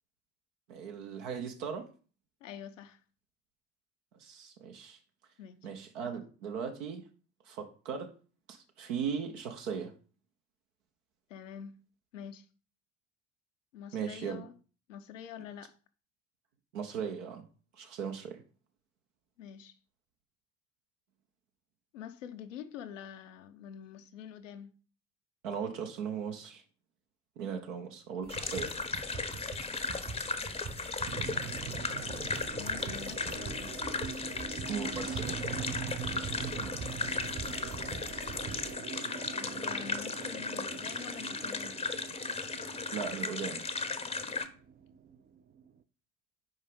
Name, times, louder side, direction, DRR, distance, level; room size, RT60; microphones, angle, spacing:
voice 1, 0.7-1.9 4.2-5.0 5.6-7.0 7.5-8.1 8.5-9.9 13.9-14.4 16.7-17.4 17.7-18.4 25.4-26.6 27.4-28.7 34.7-35.4 42.9-43.6, right 7 dB, 70° right, 0.9 m, -38 dB
voice 2, 2.4-3.0 5.4-5.7 11.3-11.8 12.1-12.5 13.7-14.5 14.9-15.7 19.4-19.8 21.9-24.7 32.6-33.9 39.3-41.8, left 8 dB, 75° left, 0.7 m, -46 dB
sound 1, 28.2-38.7, right 4 dB, 45° right, 1.6 m, -45 dB
sound 2, 28.3-44.5, left 4 dB, 15° left, 0.7 m, -36 dB
sound 3, 31.1-45.7, right 7 dB, 25° right, 0.4 m, -43 dB
5.4 x 5.0 x 5.2 m
figure-of-eight pair, 50°, 38 cm